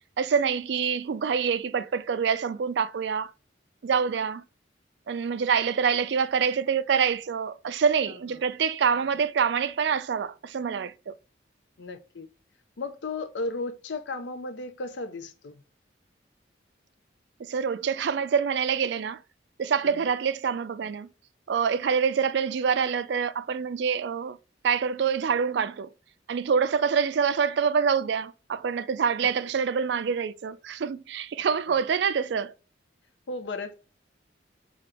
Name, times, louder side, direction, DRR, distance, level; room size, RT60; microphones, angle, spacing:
voice 1, 0.2-3.3 3.8-4.4 5.1-11.1 17.4-19.2 19.6-21.1 21.5-24.4 24.6-25.9 26.3-32.5, right 6 dB, 65° right, 0.3 m, -26 dB
voice 2, 11.8-12.3 12.8-15.5 19.8-19.9 31.7-31.8 33.3-33.7, left 3 dB, 70° left, 0.6 m, -34 dB
5.1 x 2.8 x 3.4 m
head